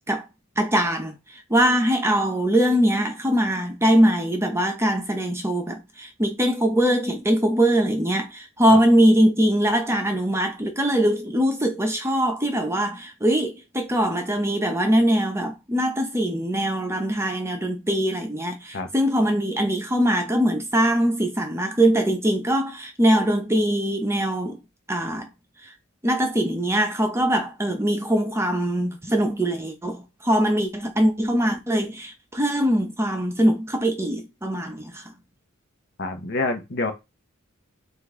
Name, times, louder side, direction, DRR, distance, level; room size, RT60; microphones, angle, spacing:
voice 1, 0.6-1.1 1.5-24.6 24.9-25.3 26.0-35.0, equal, 10° right, 0.8 m, -22 dB
voice 2, 36.0-36.9, left 3 dB, 50° left, 1.0 m, -27 dB
5.2 x 2.7 x 3.7 m
head